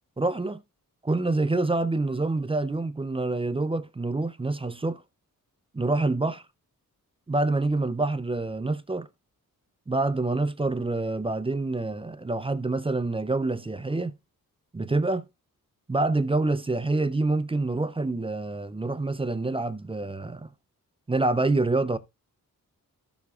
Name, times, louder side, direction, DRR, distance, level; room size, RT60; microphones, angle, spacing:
voice 1, 0.2-0.6 1.0-5.0 5.7-6.4 7.3-9.1 9.9-14.1 14.7-15.2 15.9-20.5 21.1-22.0, right 2 dB, 15° right, 0.5 m, -26 dB
13.5 x 7.1 x 2.3 m
wide cardioid pair, 135°, 35 cm